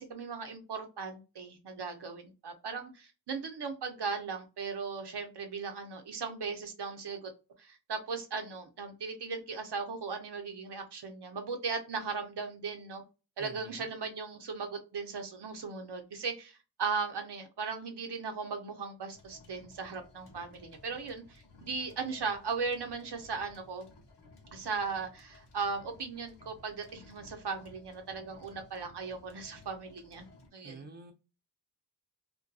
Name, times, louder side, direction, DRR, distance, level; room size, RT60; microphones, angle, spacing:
voice 1, 0.0-7.3 7.6-13.0 13.4-23.9 24.5-30.3 30.5-30.8, right 5 dB, 70° right, 0.7 m, -37 dB
voice 2, 13.4-13.9 30.6-31.1, right 3 dB, 25° right, 0.6 m, -48 dB
sound 1, 19.1-30.5, left 3 dB, 75° left, 0.9 m, -57 dB
2.6 x 2.2 x 2.2 m
wide cardioid pair, 70°, 41 cm